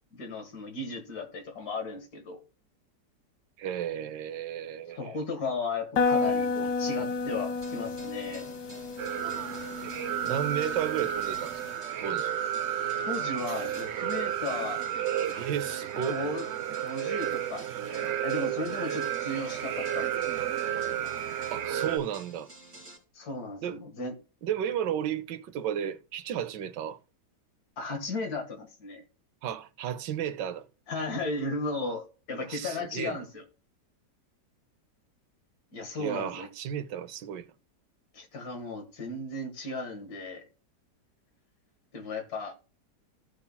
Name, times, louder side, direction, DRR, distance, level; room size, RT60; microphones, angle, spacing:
voice 1, 0.1-2.4 4.9-8.5 13.0-14.8 16.1-20.1 23.1-24.2 27.8-29.0 30.9-33.4 35.7-36.5 38.1-40.5 41.9-42.7, left 3 dB, 60° left, 2.1 m, -35 dB
voice 2, 3.6-5.2 9.8-9.9 10.2-11.6 12.0-12.3 15.3-16.2 21.5-22.5 23.6-23.8 24.4-27.0 29.4-30.7 32.3-33.2 36.0-37.5, right 9 dB, 85° right, 1.4 m, -33 dB
sound 1, 6.0-11.7, left 4 dB, 80° left, 1.8 m, -31 dB
sound 2, 7.6-23.0, right 3 dB, 35° right, 4.1 m, -51 dB
sound 3, 9.0-22.0, right 10 dB, 60° right, 0.7 m, -32 dB
15.5 x 5.5 x 2.2 m
omnidirectional pair, 1.8 m